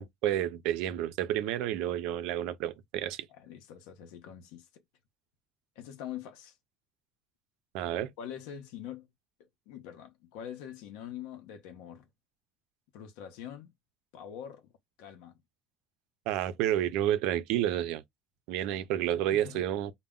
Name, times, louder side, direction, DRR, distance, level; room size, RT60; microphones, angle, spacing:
voice 1, 0.0-3.3 7.7-8.1 16.3-18.0 18.5-19.9, right 12 dB, 70° right, 0.4 m, -30 dB
voice 2, 3.3-4.7 5.8-6.6 8.2-9.1 9.4-12.1 12.9-13.7 14.1-14.7 15.0-15.4 18.7-18.8 19.3-19.6, left 9 dB, 80° left, 0.7 m, -44 dB
2.1 x 2.0 x 3.5 m
cardioid pair, 145°, 0 cm